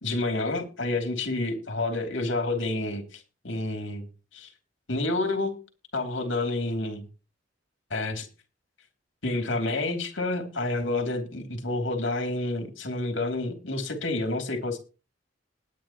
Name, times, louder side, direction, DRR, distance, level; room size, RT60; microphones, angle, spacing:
voice 1, 0.0-4.1 4.3-4.5 4.9-5.6 5.9-7.1 7.9-8.3 9.2-14.8, left 2 dB, 75° left, 5 dB, 2.8 m, -29 dB
19.5 x 8.9 x 3.0 m, 0.33 s
head